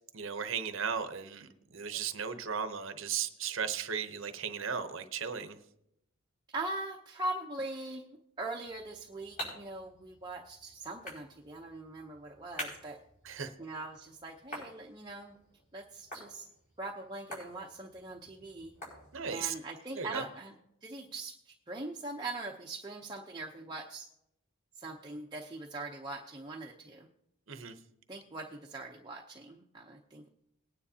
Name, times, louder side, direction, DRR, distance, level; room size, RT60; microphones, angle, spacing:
voice 1, 0.1-5.6 13.2-13.5 19.1-19.5 20.0-20.2 27.5-27.7, right 7 dB, 60° right, 9 dB, 0.8 m, -36 dB
voice 2, 6.5-8.1 8.4-13.0 13.6-15.4 15.7-16.5 16.8-18.7 19.3-20.5 20.8-24.1 24.8-27.1 28.1-30.3, right 2 dB, 20° right, -1 dB, 0.7 m, -41 dB
sound 1, 8.7-19.5, equal, 40° left, 5.7 m, -48 dB
19.5 x 9.8 x 2.8 m, 0.81 s
head